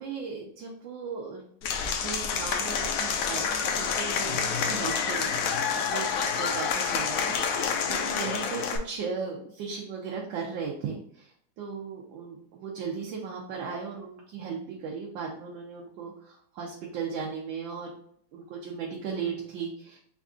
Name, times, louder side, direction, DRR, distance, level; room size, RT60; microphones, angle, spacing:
voice 1, 0.0-1.4 1.8-17.9 18.3-20.0, right 5 dB, 85° right, -2 dB, 1.5 m, -37 dB
Applause / Crowd, 1.6-8.8, left 6 dB, 80° left, 0.7 m, -28 dB
4.4 x 2.4 x 3.7 m, 0.64 s
omnidirectional pair, 2.0 m